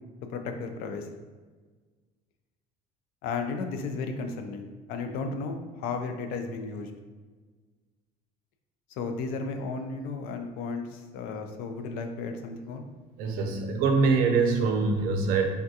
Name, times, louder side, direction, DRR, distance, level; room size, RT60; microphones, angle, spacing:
voice 1, 0.3-1.0 3.2-6.9 9.0-12.9, left 4 dB, 80° left, 5 dB, 0.4 m, -34 dB
voice 2, 13.2-15.4, right 4 dB, 70° right, 4 dB, 0.5 m, -24 dB
3.4 x 2.3 x 2.7 m, 1.4 s
cardioid pair, 155°, 15 cm